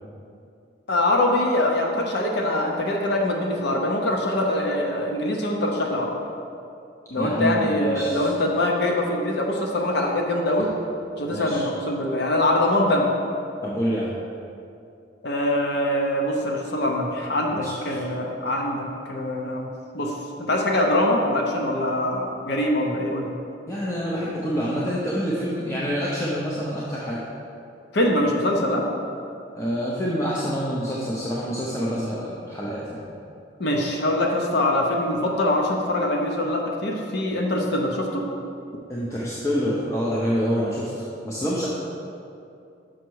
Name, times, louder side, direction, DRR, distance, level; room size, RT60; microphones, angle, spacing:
voice 1, 0.9-6.1 7.1-10.7 11.2-13.1 15.2-19.7 19.9-23.3 27.9-28.8 33.6-38.3, left 1 dB, 65° left, 1 dB, 0.7 m, -23 dB
voice 2, 7.2-8.3 11.3-11.6 13.6-14.2 17.5-18.0 23.7-27.2 29.5-33.0 38.9-41.7, equal, 15° left, -6 dB, 0.7 m, -27 dB
6.3 x 5.8 x 4.6 m, 2.5 s
head